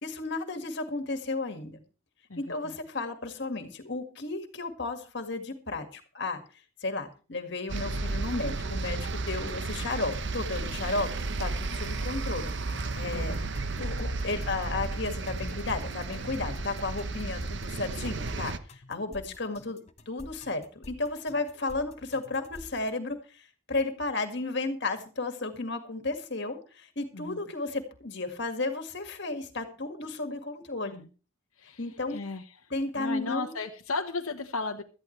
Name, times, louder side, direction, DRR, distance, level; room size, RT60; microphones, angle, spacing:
voice 1, 0.0-1.8 2.4-6.4 6.8-11.1 11.4-13.4 13.8-19.8 20.1-31.0 31.8-32.2 32.7-33.6, left 3 dB, 50° left, 7 dB, 2.0 m, -33 dB
voice 2, 2.3-2.8 13.1-13.5 27.1-27.4 30.9-31.1 31.6-32.6 33.0-34.8, left 3 dB, 80° left, 4 dB, 1.2 m, -35 dB
sound 1, 7.7-18.6, right 3 dB, 55° right, 0.9 m, -33 dB
sound 2, 9.3-22.9, left 1 dB, 30° left, 1.0 m, -46 dB
17.0 x 13.0 x 3.3 m, 0.35 s
head